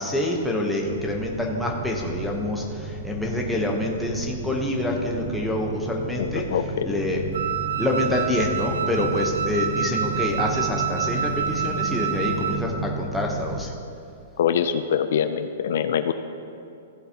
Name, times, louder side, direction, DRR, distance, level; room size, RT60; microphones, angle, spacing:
voice 1, 0.0-7.4 7.8-13.7, left 1 dB, ahead, -2 dB, 0.8 m, -27 dB
sound 1, 0.8-13.6, right 3 dB, 25° right, 0.5 m, -33 dB
voice 2, 6.5-6.9 14.4-16.1, left 8 dB, 60° left, 10 dB, 0.4 m, -24 dB
Wind instrument woodwind instrument, 7.3-12.7, right 8 dB, 80° right, 0.6 m, -28 dB
15.5 x 7.8 x 2.8 m, 2.6 s
hypercardioid pair, 170°, 0 cm